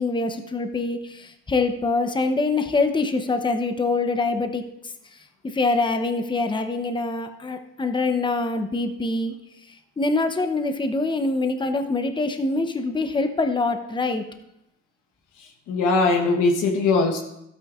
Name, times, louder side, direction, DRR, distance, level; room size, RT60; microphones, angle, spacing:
voice 1, 0.0-4.6 5.4-9.3 10.0-14.2, left 3 dB, 15° left, 7 dB, 0.7 m, -24 dB
voice 2, 15.4-17.2, left 3 dB, 90° left, 2 dB, 1.2 m, -21 dB
12.0 x 8.7 x 2.5 m, 0.83 s
cardioid pair, 90°, 30 cm